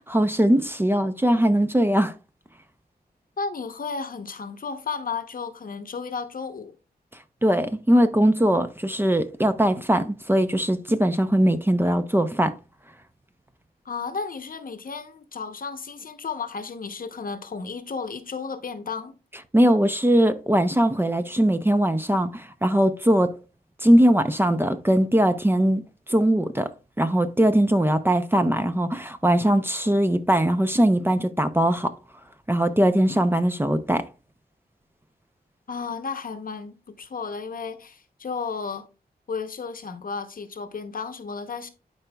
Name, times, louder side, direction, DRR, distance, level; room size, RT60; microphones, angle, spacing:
voice 1, 0.0-2.1 7.4-12.5 19.5-23.3 23.8-25.8 26.1-26.7 27.0-31.9 32.5-34.0, right 1 dB, 15° right, 0.6 m, -20 dB
voice 2, 3.4-6.7 13.8-19.1 35.7-38.9 39.3-41.7, left 5 dB, 55° left, 0.9 m, -33 dB
11.5 x 4.5 x 2.3 m
wide cardioid pair, 80°, 17 cm